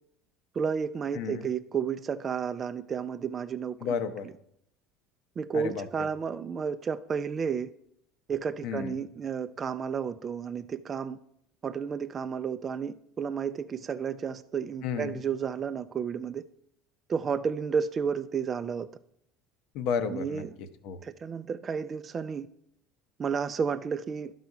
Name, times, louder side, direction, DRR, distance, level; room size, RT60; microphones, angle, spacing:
voice 1, 0.6-3.8 5.4-7.7 8.3-11.2 11.6-16.4 17.1-18.9 20.1-20.5 21.0-22.5 23.2-24.3, right 6 dB, 30° right, 0.4 m, -32 dB
voice 2, 1.1-1.5 3.8-4.3 5.5-6.1 8.6-9.0 14.8-15.2 19.7-21.0, left 6 dB, 70° left, 0.9 m, -33 dB
12.0 x 4.1 x 4.7 m
supercardioid pair, 105°, 0 cm